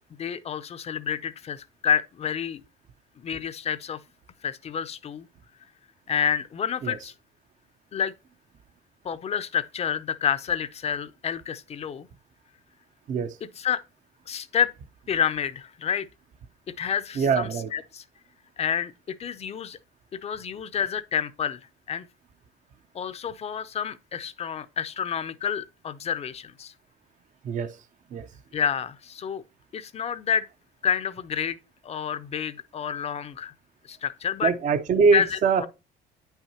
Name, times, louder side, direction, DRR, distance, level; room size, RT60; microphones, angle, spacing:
voice 1, 0.2-2.6 3.2-4.0 4.4-5.3 6.1-7.1 7.9-8.1 9.0-12.1 13.6-13.8 14.3-14.7 15.1-16.1 16.8-18.0 18.6-19.8 20.1-21.6 21.9-22.1 22.9-26.7 28.5-29.4 29.7-30.4 30.8-31.6 31.8-33.5 33.9-34.5 35.1-35.7, left 8 dB, 40° left, 0.5 m, -29 dB
voice 2, 17.2-17.7 27.4-27.8 28.1-28.2 34.4-35.7, right 5 dB, 50° right, 0.6 m, -23 dB
8.9 x 5.7 x 2.8 m
cardioid pair, 110°, 17 cm